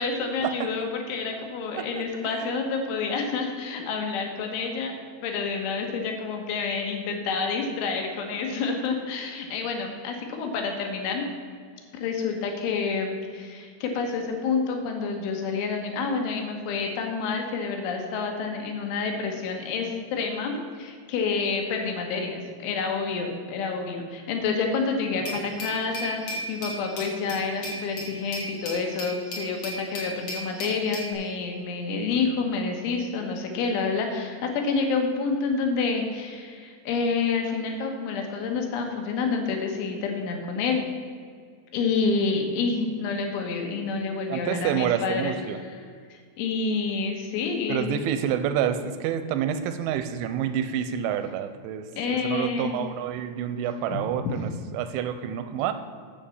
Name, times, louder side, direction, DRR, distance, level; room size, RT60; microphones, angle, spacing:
voice 1, 0.0-4.9 5.2-11.3 12.0-40.8 41.7-45.3 45.7-45.8 46.1-47.9 52.0-52.8 53.9-54.0, left 4 dB, 75° left, 3 dB, 3.6 m, -28 dB
voice 2, 2.2-2.6 25.2-25.7 44.3-45.6 47.7-51.9 52.2-55.7, right 9 dB, 85° right, 10 dB, 2.8 m, -28 dB
Glass, 25.2-31.1, equal, 45° left, 3.0 m, -35 dB
8.9 x 7.3 x 7.0 m, 2.1 s
omnidirectional pair, 5.7 m